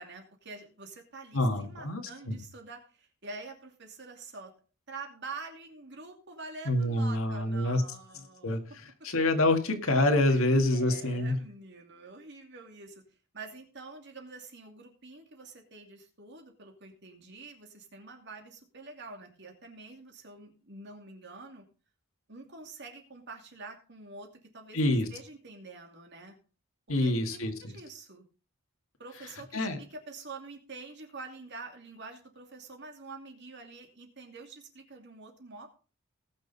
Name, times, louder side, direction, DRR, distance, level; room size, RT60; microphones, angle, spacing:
voice 1, 0.0-4.5 4.9-8.8 10.3-13.0 13.3-21.7 22.3-26.4 27.0-28.2 29.0-35.7, right 3 dB, 55° right, 3 dB, 2.6 m, -46 dB
voice 2, 1.3-2.4 6.7-7.8 8.4-8.6 9.0-11.4 24.7-25.1 26.9-27.8 29.5-29.8, left 1 dB, 70° left, 5 dB, 1.9 m, -26 dB
19.0 x 6.5 x 4.1 m, 0.38 s
head